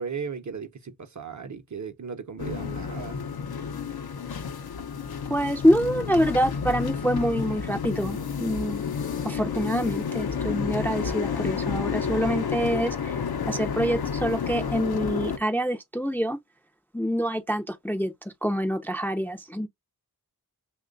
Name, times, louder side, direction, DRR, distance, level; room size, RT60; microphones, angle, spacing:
voice 1, 0.0-3.2, right 6 dB, 50° right, 0.6 m, -36 dB
sound 1, 2.4-15.4, left 6 dB, 75° left, 0.6 m, -30 dB
voice 2, 5.3-8.8 9.2-13.2 13.5-16.4 16.9-19.7, equal, 5° left, 0.4 m, -26 dB
3.1 x 2.2 x 3.7 m
wide cardioid pair, 75°, 38 cm